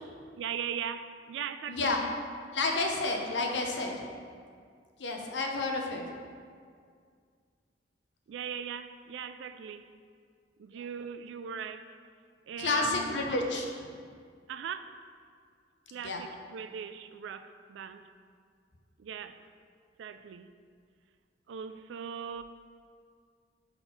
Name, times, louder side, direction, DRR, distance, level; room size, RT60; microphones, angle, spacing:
voice 1, 0.4-1.9 8.3-9.9 10.6-11.9 12.5-13.2 14.5-15.0 15.9-18.1 19.0-19.4 20.0-20.5 21.5-22.4, right 7 dB, 85° right, 10 dB, 0.3 m, -39 dB
voice 2, 1.7-2.0 2.5-4.1 5.0-6.0 12.6-13.9 16.0-16.2, left 3 dB, 75° left, 2 dB, 0.7 m, -30 dB
4.3 x 4.0 x 5.5 m, 2.1 s
head